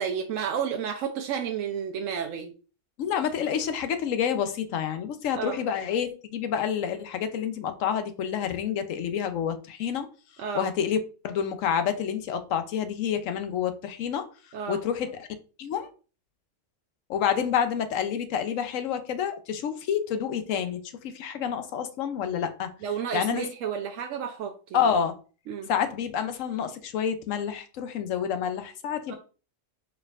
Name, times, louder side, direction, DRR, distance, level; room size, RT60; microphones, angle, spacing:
voice 1, 0.0-2.5 5.3-5.6 10.4-10.7 14.5-14.8 22.8-24.8 25.5-25.7 29.1-29.2, right 7 dB, 85° right, 1.0 m, -31 dB
voice 2, 3.0-10.1 10.5-11.0 11.2-14.3 14.7-15.3 15.6-15.9 17.1-22.7 23.1-23.5 24.7-25.1 25.7-29.2, left 8 dB, 90° left, 1.1 m, -28 dB
4.6 x 4.4 x 2.4 m
omnidirectional pair, 1.3 m